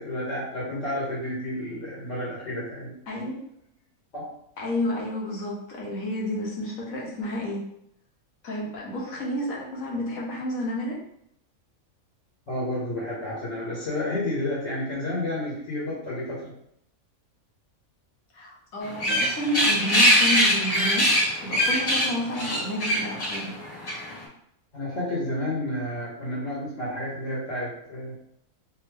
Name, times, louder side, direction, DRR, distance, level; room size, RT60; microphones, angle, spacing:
voice 1, 0.0-2.9 4.1-4.3 12.5-16.5 24.7-28.1, left 1 dB, 55° left, -7 dB, 1.4 m, -31 dB
voice 2, 3.1-3.4 4.6-7.6 8.4-11.0 18.3-23.5, left 1 dB, 70° left, -3 dB, 1.5 m, -30 dB
sound 1, 18.8-24.2, equal, 40° left, 1.3 m, -23 dB
3.5 x 2.6 x 3.3 m, 0.74 s
omnidirectional pair, 1.5 m